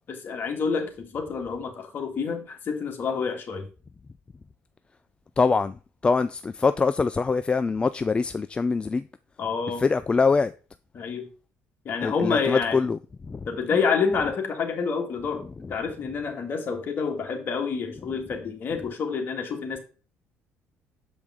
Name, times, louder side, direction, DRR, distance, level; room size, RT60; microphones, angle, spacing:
voice 1, 0.1-3.7 9.4-9.8 10.9-11.3 11.8-12.9 13.5-19.8, left 5 dB, 45° left, 1.7 m, -28 dB
voice 2, 5.4-9.1 9.7-10.5 12.0-13.5 15.6-15.7, left 4 dB, 20° left, 0.3 m, -24 dB
7.2 x 5.0 x 3.6 m
cardioid pair, 110°, 5 cm